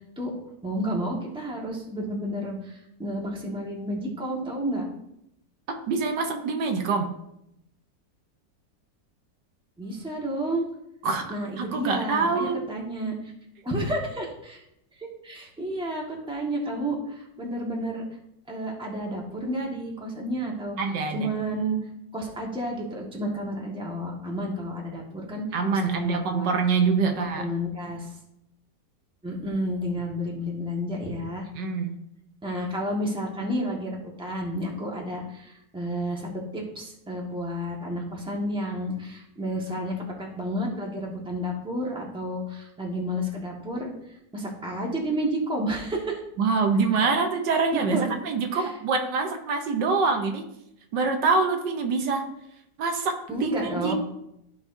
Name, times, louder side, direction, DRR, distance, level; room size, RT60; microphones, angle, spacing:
voice 1, 0.6-4.8 9.8-10.7 11.3-13.3 13.6-14.6 15.0-18.1 18.5-21.8 22.1-25.4 25.7-26.5 27.0-28.1 29.2-31.5 32.4-46.2 47.0-47.1 47.7-48.2 48.5-48.7 53.3-53.9, equal, 5° right, -2 dB, 1.3 m, -31 dB
voice 2, 5.7-7.1 11.0-12.6 20.8-21.3 25.5-27.5 31.6-32.0 46.4-50.4 50.9-52.3 52.8-53.9, right 4 dB, 75° right, 5 dB, 1.5 m, -25 dB
14.0 x 4.7 x 2.6 m, 0.80 s
omnidirectional pair, 2.0 m